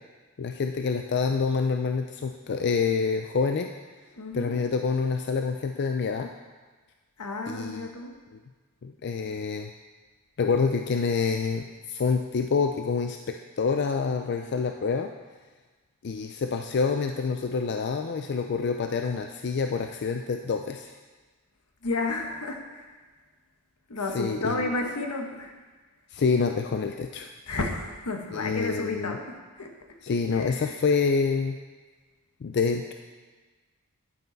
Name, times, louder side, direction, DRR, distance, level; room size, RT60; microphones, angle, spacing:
voice 1, 0.4-3.7 4.3-6.3 7.5-7.9 8.3-8.4 8.8-9.7 10.4-15.1 16.0-21.0 24.1-24.7 26.1-27.3 28.3-29.2 30.0-31.6 32.4-32.9, left 5 dB, 50° left, 5 dB, 0.4 m, -27 dB
voice 2, 4.2-4.5 7.2-8.1 21.8-22.9 23.9-25.5 27.5-29.7 30.3-30.7, left 2 dB, 80° left, 3 dB, 1.2 m, -32 dB
10.0 x 9.2 x 4.0 m, 1.3 s
head